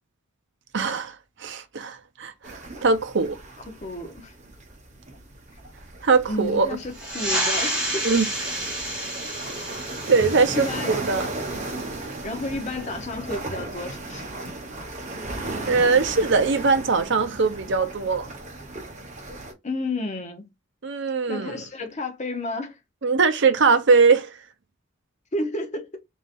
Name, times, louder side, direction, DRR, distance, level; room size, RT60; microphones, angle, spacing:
voice 1, 0.7-3.4 6.0-6.7 8.0-8.2 9.7-9.8 10.1-11.3 15.7-18.3 20.8-21.6 23.0-24.4, right 4 dB, 60° right, 0.6 m, -21 dB
sound 1, 2.4-19.5, right 2 dB, 35° right, 1.3 m, -36 dB
voice 2, 3.8-4.3 6.3-8.1 10.5-11.0 12.2-14.2 19.6-20.5 21.3-22.8 25.3-26.0, left 2 dB, 35° left, 0.9 m, -31 dB
sound 2, 6.9-12.1, right 1 dB, 5° right, 2.3 m, -30 dB
4.0 x 4.0 x 2.5 m
head